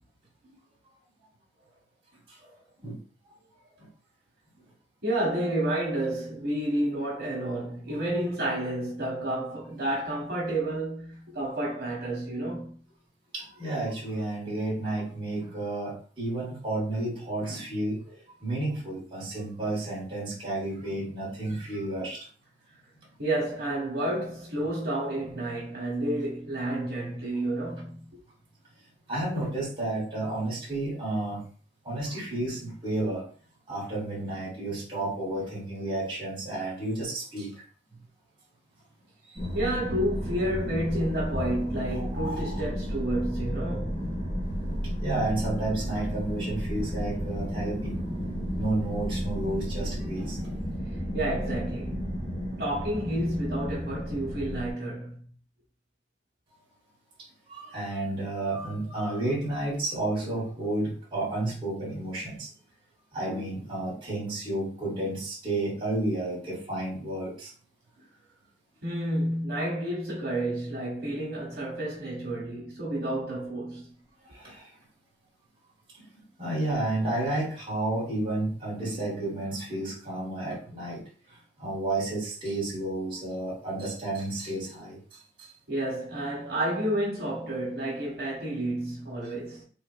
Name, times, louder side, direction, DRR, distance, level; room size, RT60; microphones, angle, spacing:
voice 1, 5.0-12.8 23.2-28.1 39.5-44.2 51.1-52.1 52.6-55.2 68.8-73.9 85.7-89.6, right 1 dB, 55° right, 1.3 m, -30 dB
voice 2, 13.3-22.3 29.1-31.4 31.8-33.3 33.7-37.5 41.9-42.6 45.0-47.9 48.5-50.5 57.5-62.5 63.1-67.5 74.3-74.7 76.1-81.0 81.3-85.5, right 2 dB, 25° right, 1.6 m, -31 dB
sound 1, 39.4-54.7, equal, 35° left, 1.3 m, -32 dB
4.2 x 3.0 x 2.2 m
head